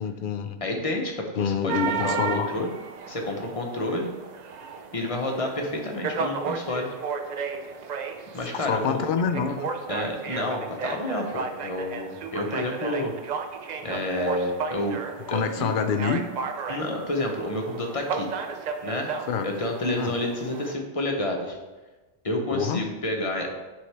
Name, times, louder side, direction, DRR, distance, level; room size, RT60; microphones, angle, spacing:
voice 1, 0.0-0.6 1.4-2.5 8.5-9.7 15.3-16.2 19.3-19.5 20.0-20.1 22.5-22.8, left 6 dB, 60° left, 8 dB, 0.6 m, -26 dB
voice 2, 0.6-2.7 3.1-4.1 4.9-6.9 8.3-9.0 9.9-13.1 13.8-15.0 15.3-15.7 16.7-18.3 18.8-19.1 19.4-21.6 22.2-23.5, left 1 dB, 35° left, 2 dB, 0.9 m, -29 dB
sound 1, 1.7-20.7, right 5 dB, 55° right, 0.5 m, -34 dB
9.3 x 3.6 x 3.4 m, 1.2 s
omnidirectional pair, 1.2 m